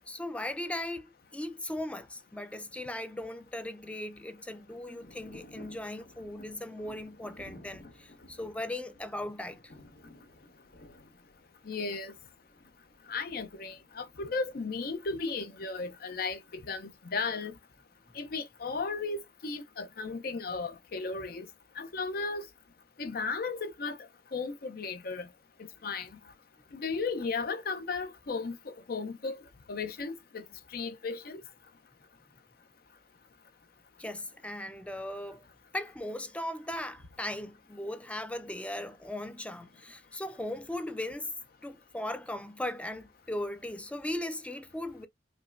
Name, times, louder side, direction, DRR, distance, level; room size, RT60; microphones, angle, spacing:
voice 1, 0.1-9.7 34.0-35.5 35.7-41.3 41.6-45.1, left 1 dB, 5° left, 0.4 m, -38 dB
Thunder / Rain, 4.1-15.8, left 1 dB, 80° left, 1.1 m, -55 dB
voice 2, 11.7-12.1 13.1-17.5 18.1-21.5 21.8-22.5 23.0-24.0 24.3-25.3 25.8-26.1 26.7-29.4 29.7-30.4 30.7-31.4, left 4 dB, 55° left, 0.6 m, -35 dB
5.2 x 2.2 x 2.5 m
head